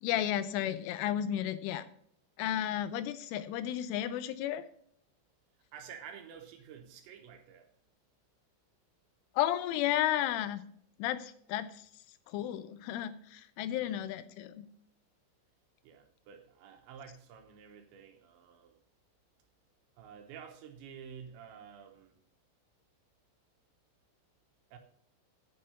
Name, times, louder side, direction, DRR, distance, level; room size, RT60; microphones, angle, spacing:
voice 1, 0.0-1.9 2.4-4.7 9.4-10.6 11.0-11.9 12.3-14.7, left 12 dB, 85° left, 13 dB, 3.0 m, -33 dB
voice 2, 5.7-7.7 13.8-14.0 15.8-18.7 20.0-22.2 24.7-24.8, right 7 dB, 75° right, 4 dB, 2.9 m, -50 dB
9.4 x 5.9 x 6.8 m, 0.65 s
omnidirectional pair, 5.8 m